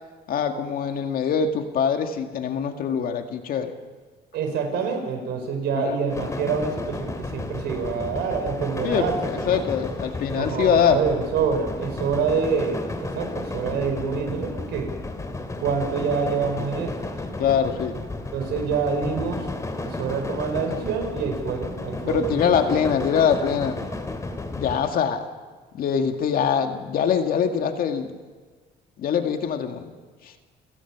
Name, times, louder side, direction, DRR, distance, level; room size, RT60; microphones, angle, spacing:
voice 1, 0.3-3.7 5.7-6.0 8.8-11.0 17.4-18.0 22.1-23.8 24.5-25.3 25.7-28.2 29.0-29.9 30.2-30.3, left 7 dB, 60° left, 6 dB, 2.1 m, -23 dB
voice 2, 4.3-9.2 9.4-9.6 10.3-14.9 15.6-17.1 18.3-19.5 19.8-22.4 22.7-22.9, right 6 dB, 80° right, 6 dB, 4.7 m, -26 dB
sound 1, 6.1-24.9, left 2 dB, 20° left, 2.7 m, -33 dB
29.5 x 17.0 x 6.1 m, 1.4 s
cardioid pair, 110°, 17 cm